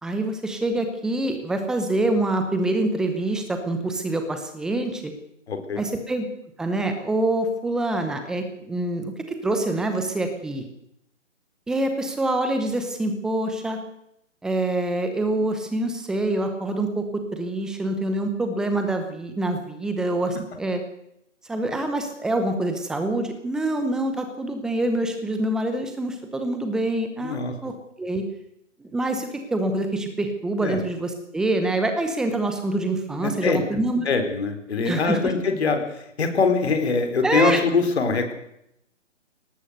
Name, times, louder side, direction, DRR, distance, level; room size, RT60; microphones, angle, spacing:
voice 1, 0.0-5.1 5.8-6.2 6.6-10.6 11.7-13.8 14.4-20.8 21.5-27.7 28.0-28.2 28.8-34.1 34.9-35.3 37.2-37.6, right 2 dB, ahead, 6 dB, 0.8 m, -26 dB
voice 2, 5.5-5.8 27.2-27.5 30.6-30.8 33.2-33.6 34.0-38.3, left 4 dB, 55° left, 6 dB, 4.7 m, -23 dB
23.0 x 18.0 x 6.7 m, 0.78 s
hypercardioid pair, 155°, 38 cm